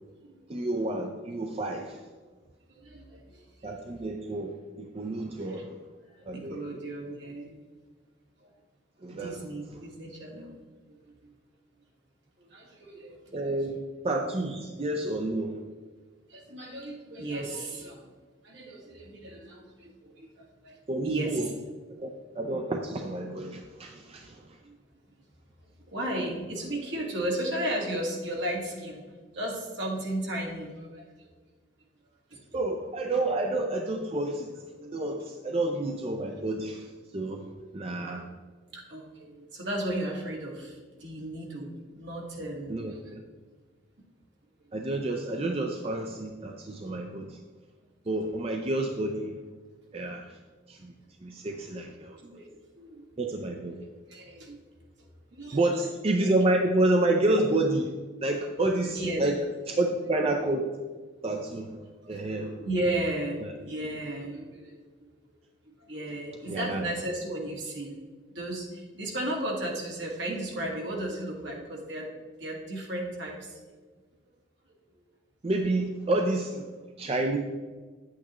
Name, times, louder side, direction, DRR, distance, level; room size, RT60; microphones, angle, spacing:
voice 1, 0.5-2.0 3.6-5.7 6.2-6.8 9.0-9.4 13.3-13.8 14.0-15.6 20.9-21.5 22.0-22.1 22.4-24.4 32.5-34.5 34.9-37.5 37.7-38.2 42.7-43.2 44.7-47.4 48.1-49.4 49.9-50.4 50.7-50.9 51.2-52.2 53.2-53.8 55.5-57.9 58.2-59.4 59.7-60.7 61.2-61.8 62.1-62.6 63.4-63.5 66.5-66.9 75.4-76.7 77.0-77.4, right 2 dB, 30° right, 3 dB, 0.5 m, -29 dB
voice 2, 2.7-3.7 5.5-5.8 6.3-7.6 9.1-10.6 10.9-11.3 12.4-13.4 16.3-18.1 18.4-20.8 21.0-21.5 24.0-24.1 24.6-24.8 25.9-29.0 29.3-31.3 32.3-32.4 34.8-35.0 37.3-37.5 38.0-38.2 38.7-41.7 42.0-43.1 52.2-52.5 52.7-53.1 54.1-54.6 55.0-55.6 58.9-59.3 62.0-65.1 65.7-68.0 68.3-73.6 77.0-77.2, right 1 dB, 65° right, -1 dB, 1.7 m, -35 dB
9.9 x 8.3 x 3.0 m, 1.4 s
head